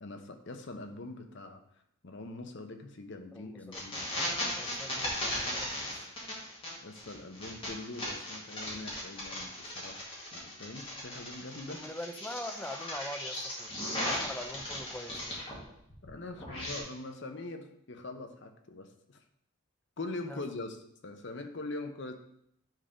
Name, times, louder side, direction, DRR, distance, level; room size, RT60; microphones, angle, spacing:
voice 1, 0.0-1.6 2.0-4.1 6.8-10.0 10.3-11.8 16.0-19.2 20.0-20.8 21.0-22.1, left 2 dB, 55° left, 6 dB, 0.8 m, -43 dB
voice 2, 3.3-3.9 4.2-6.1 11.7-13.8 14.0-15.4 20.3-20.4, left 1 dB, 5° left, 6 dB, 0.5 m, -44 dB
sound 1, 3.7-15.6 15.9-16.8, left 1 dB, 25° left, 1.9 m, -37 dB
9.2 x 3.7 x 5.0 m, 0.73 s
head